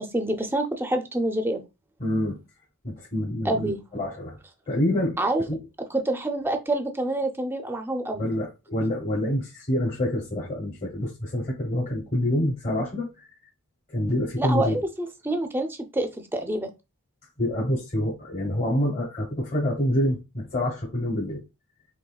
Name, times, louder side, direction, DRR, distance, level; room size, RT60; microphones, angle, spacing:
voice 1, 0.0-1.6 3.4-3.8 5.2-5.4 5.9-8.2 14.4-16.7, right 1 dB, 10° right, 0.5 m, -27 dB
voice 2, 2.0-2.4 2.8-4.4 4.7-5.6 8.1-13.3 13.9-14.8 17.4-21.4, left 1 dB, 35° left, 1.1 m, -27 dB
5.0 x 3.2 x 2.3 m
head